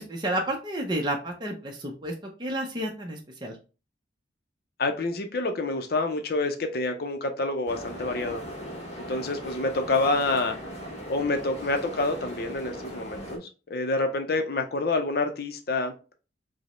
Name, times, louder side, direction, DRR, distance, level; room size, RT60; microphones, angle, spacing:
voice 1, 0.0-2.1 2.4-3.6, right 1 dB, 25° right, 0.5 m, -31 dB
voice 2, 4.8-8.4 9.1-10.6 11.1-15.9, left 2 dB, 55° left, 0.5 m, -27 dB
sound 1, 7.7-13.4, equal, 35° left, 1.0 m, -39 dB
5.0 x 2.0 x 3.0 m
head